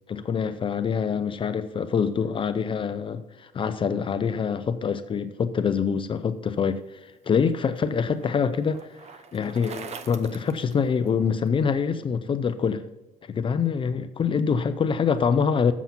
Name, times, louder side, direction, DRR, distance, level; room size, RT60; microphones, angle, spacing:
voice 1, 0.1-7.0 7.3-8.8 9.3-12.8 13.3-15.7, left 6 dB, 35° left, 11 dB, 0.5 m, -25 dB
Bicycle, 7.1-11.5, right 7 dB, 50° right, 0.7 m, -44 dB
7.6 x 7.2 x 5.6 m, 1.0 s
cardioid pair, 140°, 15 cm